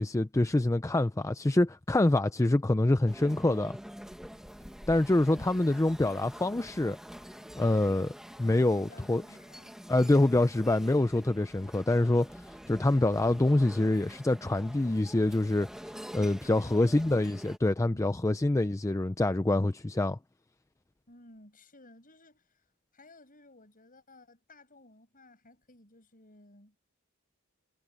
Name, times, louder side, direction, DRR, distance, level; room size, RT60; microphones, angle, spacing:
voice 1, 0.0-3.8 4.9-7.0 7.6-8.1 8.4-9.2 9.9-15.7 16.1-20.2, left 2 dB, 15° left, 0.5 m, -26 dB
sound 1, 3.1-17.6, equal, ahead, 1.5 m, -47 dB
voice 2, 5.3-5.7 8.7-9.8 16.4-17.5 17.9-18.2 21.1-22.7 22.9-26.8, left 2 dB, 40° left, 7.5 m, -56 dB
head